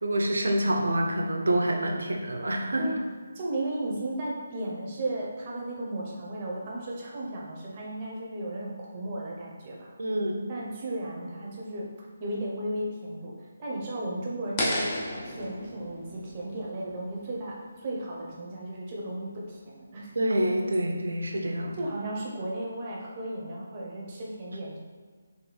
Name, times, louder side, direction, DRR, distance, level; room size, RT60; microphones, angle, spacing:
voice 1, 0.0-2.9 10.0-10.5 20.2-21.8, right 1 dB, 90° right, 1 dB, 0.6 m, -27 dB
voice 2, 3.3-9.9 10.5-11.9 12.2-13.3 13.6-14.9 15.2-20.1 21.8-24.8, right 1 dB, 25° right, -3 dB, 0.7 m, -35 dB
sound 1, 14.6-17.6, left 1 dB, 20° left, 0.4 m, -33 dB
4.0 x 2.6 x 3.2 m, 1.5 s
hypercardioid pair, 170°, 0 cm